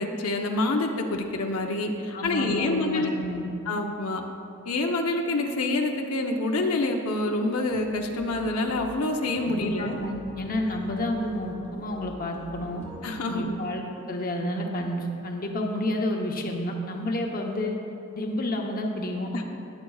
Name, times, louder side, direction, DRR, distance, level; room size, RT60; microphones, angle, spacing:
voice 1, 0.0-3.1 3.7-4.2 4.6-10.0 13.0-13.6, left 2 dB, 85° left, 2 dB, 0.8 m, -27 dB
voice 2, 2.1-3.5 9.4-12.8 13.2-17.8 18.2-19.4, left 1 dB, 40° left, 1 dB, 0.9 m, -30 dB
sound 1, 7.7-13.1, equal, 85° right, 2.3 m, -44 dB
20.0 x 7.4 x 2.4 m, 2.7 s
head